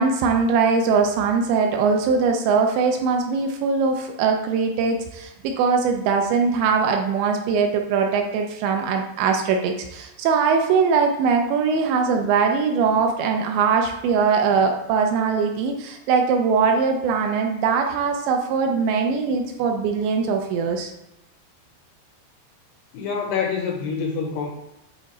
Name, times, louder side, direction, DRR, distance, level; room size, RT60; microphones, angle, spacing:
voice 1, 0.0-20.9, right 5 dB, 80° right, 3 dB, 2.7 m, -21 dB
voice 2, 22.9-24.5, left 5 dB, 80° left, 1 dB, 2.4 m, -26 dB
10.0 x 3.6 x 4.2 m, 0.90 s
omnidirectional pair, 5.4 m